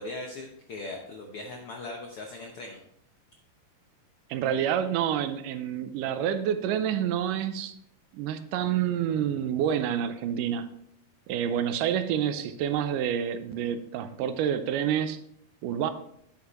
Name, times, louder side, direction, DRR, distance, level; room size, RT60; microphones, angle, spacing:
voice 1, 0.0-2.8, left 2 dB, 75° left, 2 dB, 1.2 m, -39 dB
voice 2, 4.3-7.8 8.1-10.7 11.3-15.2 15.6-15.9, right 9 dB, 80° right, 11 dB, 2.2 m, -28 dB
10.0 x 8.3 x 3.0 m, 0.71 s
omnidirectional pair, 3.8 m